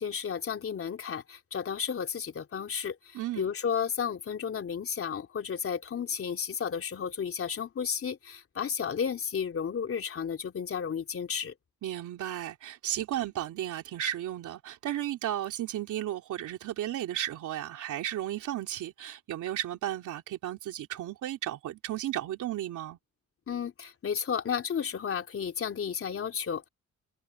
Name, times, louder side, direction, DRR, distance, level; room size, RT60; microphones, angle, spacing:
voice 1, 0.0-11.5 23.5-26.7, left 7 dB, 45° left, 3.3 m, -33 dB
voice 2, 3.1-3.5 11.8-23.0, right 12 dB, 80° right, 3.2 m, -34 dB
cardioid pair, 90°, 30 cm